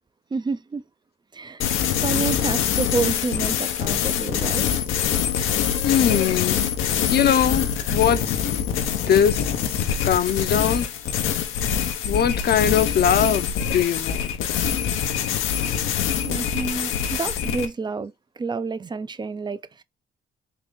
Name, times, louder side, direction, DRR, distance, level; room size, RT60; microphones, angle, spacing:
voice 1, 0.3-0.8 1.3-1.6 2.0-4.7 11.0-11.5 16.2-19.8, right 4 dB, 20° right, 0.4 m, -29 dB
sound 1, 1.6-17.7, left 8 dB, 90° left, 0.7 m, -24 dB
voice 2, 5.8-6.7 7.1-8.3 9.1-10.9 12.0-14.3, left 8 dB, 55° left, 0.7 m, -21 dB
3.8 x 2.5 x 3.7 m
cardioid pair, 90°, 20 cm